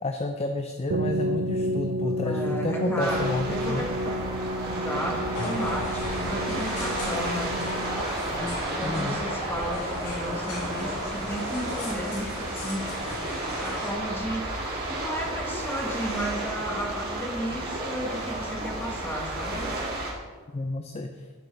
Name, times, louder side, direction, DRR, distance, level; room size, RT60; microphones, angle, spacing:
voice 1, 0.0-3.9 8.8-9.2 20.5-21.3, left 2 dB, 30° left, 6 dB, 0.5 m, -30 dB
sound 1, 0.9-8.4, equal, 70° right, 0.4 m, -31 dB
voice 2, 2.0-4.1 4.6-7.6 8.2-13.0 13.6-19.8, equal, 10° left, 0 dB, 1.5 m, -34 dB
sound 2, 3.0-20.1, right 2 dB, 45° right, 2.4 m, -32 dB
sound 3, 5.3-13.9, left 2 dB, 85° left, 2.7 m, -36 dB
12.0 x 8.4 x 3.4 m, 1.4 s
head